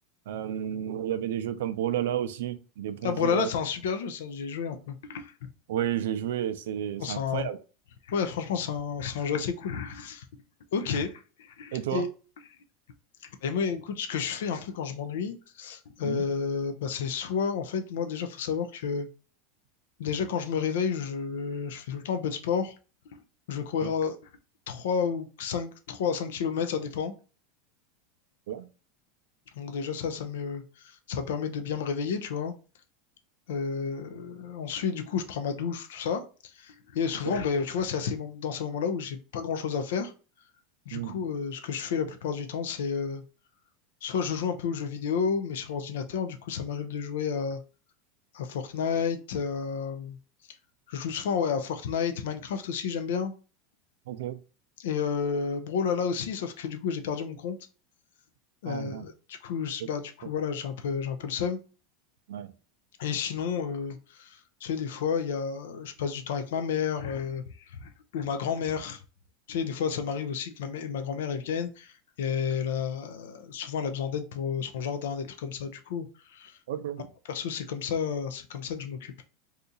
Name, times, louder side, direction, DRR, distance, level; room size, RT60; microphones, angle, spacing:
voice 1, 0.3-3.5 5.7-7.6 11.7-12.1 16.0-16.3 23.8-23.9 28.5-28.7 37.2-37.4 40.9-41.2 54.1-54.4 58.7-59.1 59.8-59.9 62.3-62.5 76.7-77.1, right 10 dB, 90° right, 0.4 m, -32 dB
voice 2, 3.0-5.3 7.0-7.5 8.1-10.3 10.7-11.2 11.6-12.1 13.4-19.1 20.0-22.7 23.1-23.2 23.5-24.2 24.7-27.1 29.6-32.5 33.5-40.1 40.9-43.2 44.0-47.6 48.3-50.2 50.9-53.3 54.8-57.6 58.6-61.6 63.0-69.0 69.5-76.6 77.3-79.1, left 6 dB, 85° left, 0.4 m, -31 dB
2.7 x 2.4 x 3.8 m
supercardioid pair, 155°, 0 cm